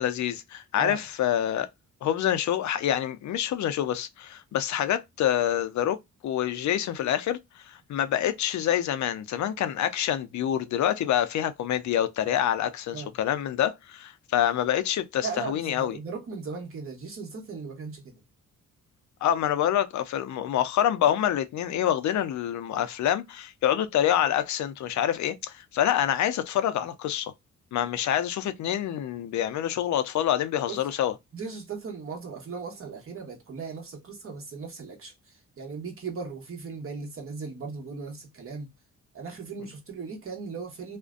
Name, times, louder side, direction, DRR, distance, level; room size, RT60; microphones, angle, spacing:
voice 1, 0.0-1.7 2.0-6.0 6.2-7.4 7.7-16.0 19.2-27.3 27.7-31.1, left 10 dB, 65° left, 0.5 m, -26 dB
voice 2, 15.2-18.2 30.7-30.8 31.3-38.7 39.1-41.0, right 5 dB, 45° right, 1.1 m, -37 dB
2.5 x 2.1 x 2.3 m
cardioid pair, 95°, 31 cm